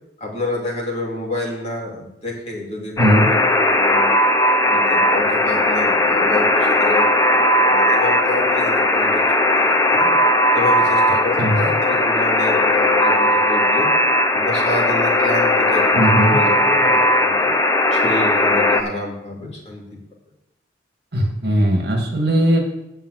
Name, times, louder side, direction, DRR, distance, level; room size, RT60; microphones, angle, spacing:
voice 1, 0.2-3.4 3.7-4.1 4.6-10.2 10.5-13.9 14.3-17.5 17.9-19.8, left 2 dB, 35° left, -4 dB, 2.7 m, -28 dB
Alarm, 3.0-18.8, left 1 dB, 15° left, 0.7 m, -17 dB
voice 2, 15.9-16.3 21.1-22.6, right 1 dB, 55° right, 1 dB, 2.0 m, -18 dB
9.0 x 5.5 x 7.9 m, 0.88 s
head